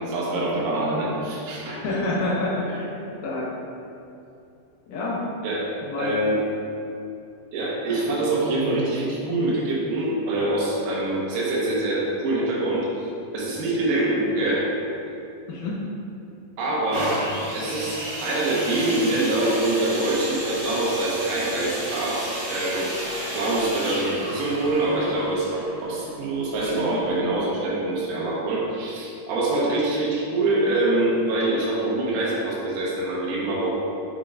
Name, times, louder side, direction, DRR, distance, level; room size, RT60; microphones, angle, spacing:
voice 1, 0.0-1.8 5.4-5.7 6.0-6.4 7.5-14.7 16.6-17.2 17.5-22.9 23.3-33.7, right 2 dB, 85° right, -5 dB, 3.2 m, -25 dB
voice 2, 1.7-3.0 3.2-3.5 4.9-5.2 5.8-6.2 12.4-12.5 15.5-15.8, left 2 dB, 70° left, -6 dB, 2.1 m, -27 dB
sound 1, 16.9-26.6 27.3-27.4, right 1 dB, 65° right, 3.2 m, -32 dB
8.1 x 5.1 x 2.4 m, 2.7 s
omnidirectional pair, 4.8 m